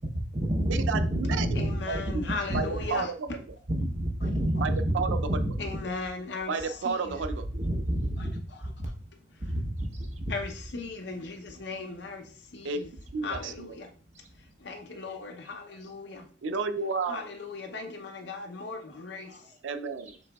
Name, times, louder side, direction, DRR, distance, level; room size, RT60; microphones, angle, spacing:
voice 1, 0.1-2.2 2.5-2.6 3.7-5.6 7.5-8.9 9.4-10.3, right 1 dB, 35° right, 2 dB, 0.9 m, -29 dB
voice 2, 0.7-1.5 1.9-2.3 2.5-3.1 4.6-5.4 6.5-7.5 12.6-12.8 13.1-13.8 16.4-17.2 19.6-20.2, right 5 dB, 90° right, 10 dB, 0.4 m, -31 dB
voice 3, 1.5-3.4 5.6-7.2 8.2-8.7 9.3-9.5 10.3-12.9 13.2-13.9 14.3-16.3 17.1-19.5, left 3 dB, 65° left, 4 dB, 0.7 m, -38 dB
6.0 x 3.8 x 2.3 m, 0.43 s
head